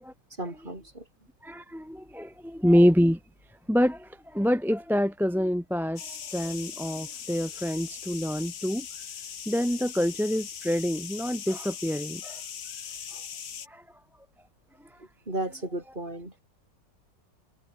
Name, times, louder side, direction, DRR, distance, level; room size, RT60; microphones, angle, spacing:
voice 1, 0.4-1.1 15.3-16.3, right 1 dB, 25° right, 5.9 m, -34 dB
voice 2, 1.4-3.2 3.7-8.9 9.5-12.4 13.7-13.8, equal, ahead, 1.0 m, -26 dB
sound 1, 6.0-13.7, left 8 dB, 45° left, 1.2 m, -40 dB
omnidirectional pair, 2.0 m